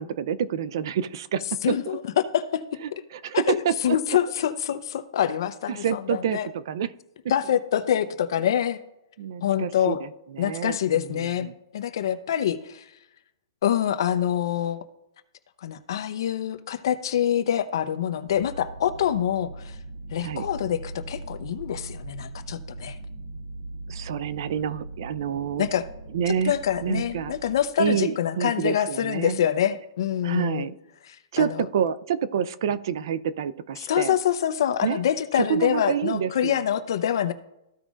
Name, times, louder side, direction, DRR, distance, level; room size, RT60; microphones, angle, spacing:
voice 1, 0.0-2.0 2.8-4.2 5.7-6.9 9.2-11.5 20.2-20.5 23.9-25.7 26.1-26.5 26.8-27.4 27.8-29.4 30.2-30.8 31.3-34.1 34.8-35.0 35.4-36.6, right 8 dB, 60° right, 15 dB, 0.5 m, -28 dB
voice 2, 1.6-2.6 3.3-3.6 3.8-6.5 7.3-8.8 9.4-10.0 10.4-11.5 11.7-12.9 13.6-14.8 15.6-19.8 20.1-23.0 25.6-25.9 26.4-30.7 31.1-31.6 33.9-37.3, left 10 dB, 65° left, 10 dB, 0.7 m, -25 dB
sound 1, 18.3-27.6, right 2 dB, 85° right, 1.5 m, -40 dB
15.0 x 5.1 x 2.5 m, 0.88 s
hypercardioid pair, 155°, 3 cm